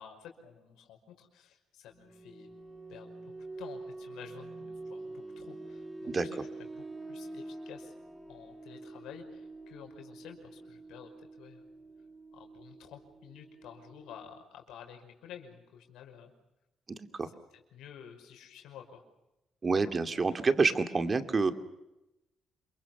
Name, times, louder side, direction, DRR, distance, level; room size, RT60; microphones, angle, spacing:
voice 1, 0.0-2.5 2.9-3.2 3.6-6.4 6.8-7.9 8.3-11.6 12.3-16.3 17.2-17.3 17.7-19.0, left 8 dB, 85° left, 4 dB, 5.5 m, -51 dB
sound 1, 1.9-14.4, right 2 dB, 15° right, 2.2 m, -46 dB
voice 2, 16.9-17.3 19.6-21.5, right 4 dB, 35° right, 8 dB, 2.4 m, -28 dB
28.5 x 23.0 x 6.9 m, 0.94 s
cardioid pair, 90°, 0 cm